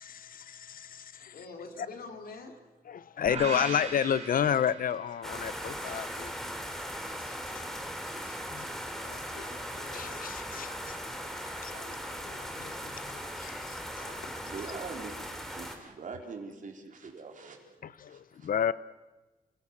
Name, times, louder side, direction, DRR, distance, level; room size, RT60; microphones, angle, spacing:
voice 1, 0.0-1.4 1.8-1.9 2.9-6.3 8.3-8.6 9.0-11.0 11.6-14.2 17.8-18.7, left 8 dB, 65° left, 0.8 m, -32 dB
voice 2, 1.3-2.6, left 3 dB, 90° left, 3.8 m, -44 dB
sound 1, 3.3-5.5, right 3 dB, 45° right, 6.6 m, -39 dB
Outdoor rain, 5.2-15.8, equal, ahead, 3.2 m, -39 dB
voice 3, 14.5-17.7 18.1-18.5, right 4 dB, 60° right, 4.3 m, -43 dB
29.5 x 17.0 x 7.4 m
wide cardioid pair, 135°, 15 cm